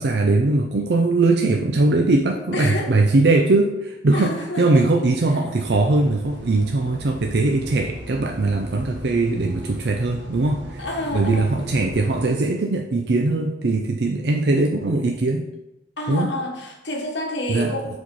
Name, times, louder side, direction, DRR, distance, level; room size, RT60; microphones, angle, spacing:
voice 1, 0.0-10.8 11.1-15.5 16.1-16.3 17.5-17.7, right 2 dB, 60° right, 2 dB, 0.5 m, -20 dB
voice 2, 2.5-2.9 4.1-4.9 10.8-11.6 16.0-18.0, left 1 dB, 65° left, 1 dB, 1.3 m, -29 dB
sound 1, 5.6-12.3, right 1 dB, 75° right, 1.0 m, -38 dB
4.8 x 4.3 x 5.3 m, 0.92 s
head